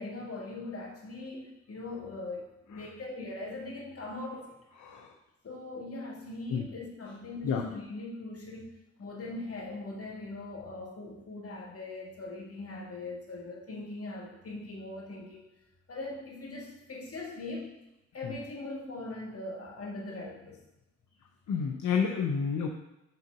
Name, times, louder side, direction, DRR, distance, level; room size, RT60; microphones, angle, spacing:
voice 1, 0.0-4.6 5.4-8.7 9.0-15.5 15.9-17.7 18.1-20.6, left 2 dB, 55° left, -2 dB, 1.7 m, -40 dB
voice 2, 4.8-5.1 6.5-6.7 7.4-7.6 18.2-18.3 21.5-22.7, left 6 dB, 90° left, 2 dB, 0.6 m, -30 dB
5.7 x 3.8 x 5.7 m, 0.90 s
cardioid pair, 65°, 29 cm